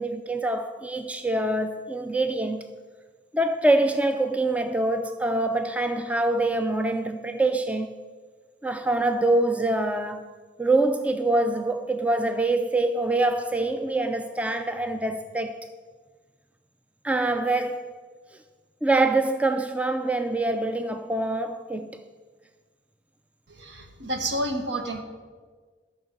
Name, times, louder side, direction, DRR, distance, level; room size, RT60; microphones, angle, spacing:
voice 1, 0.0-2.6 3.3-7.9 8.6-10.3 10.6-15.6 17.0-17.8 18.8-21.9, right 2 dB, 5° right, 0.4 m, -25 dB
voice 2, 23.5-25.0, right 1 dB, 75° right, 1.2 m, -30 dB
13.5 x 6.5 x 5.4 m
head